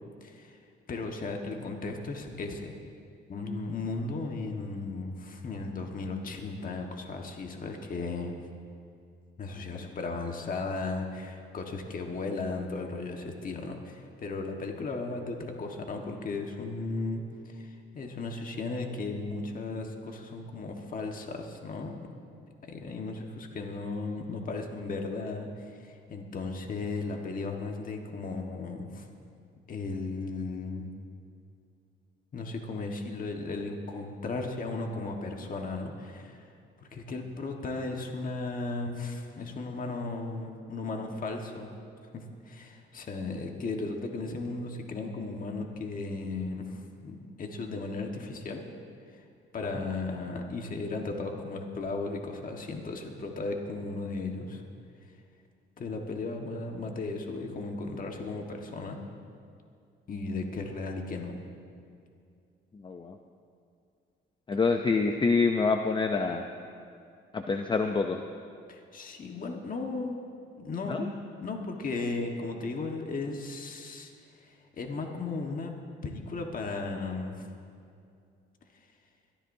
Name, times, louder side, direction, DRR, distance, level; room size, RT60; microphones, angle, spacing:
voice 1, 0.2-0.6 0.9-2.7 3.3-8.3 9.4-22.1 22.6-29.1 29.7-30.9 32.3-36.5 36.8-41.7 42.1-48.7 49.1-49.2 49.5-54.6 55.8-59.0 60.1-61.4 68.7-70.3 70.6-71.1 71.4-75.7 76.0-77.5, left 3 dB, 40° left, 2 dB, 1.5 m, -36 dB
voice 2, 62.7-63.2 64.5-66.5 67.3-68.2 70.9-71.1, left 4 dB, 25° left, 5 dB, 0.6 m, -27 dB
22.5 x 14.0 x 2.7 m, 2.4 s
cardioid pair, 90°, 21 cm